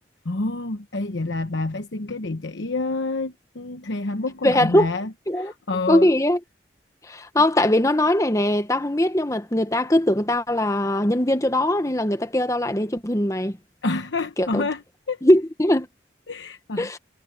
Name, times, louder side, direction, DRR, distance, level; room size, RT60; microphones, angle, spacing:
voice 1, 0.2-6.1 13.8-15.2 16.3-16.9, left 3 dB, 85° left, 1.0 m, -28 dB
voice 2, 4.4-4.9 5.3-5.5 5.9-6.4 7.1-13.6 14.4-14.6 15.2-15.9 16.8-17.0, left 1 dB, 15° left, 1.1 m, -20 dB
head